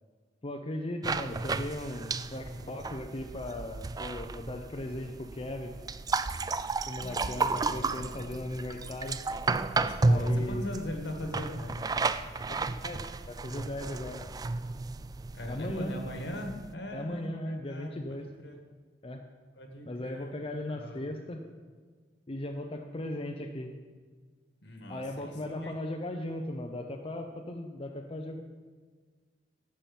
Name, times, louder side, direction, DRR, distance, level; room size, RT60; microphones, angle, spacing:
voice 1, 0.4-5.7 6.9-9.2 10.1-10.6 12.5-14.2 15.5-15.9 16.9-18.3 19.0-19.2 19.8-21.4 22.3-23.7 24.9-28.4, left 1 dB, 30° left, 3 dB, 0.6 m, -37 dB
sound 1, 1.0-16.7, right 3 dB, 20° right, 0.3 m, -33 dB
voice 2, 7.0-8.4 9.6-12.0 15.3-18.6 19.5-20.4 20.7-21.0 24.6-25.8, left 1 dB, 70° left, 3 dB, 1.8 m, -40 dB
11.0 x 7.7 x 5.4 m, 1.5 s
head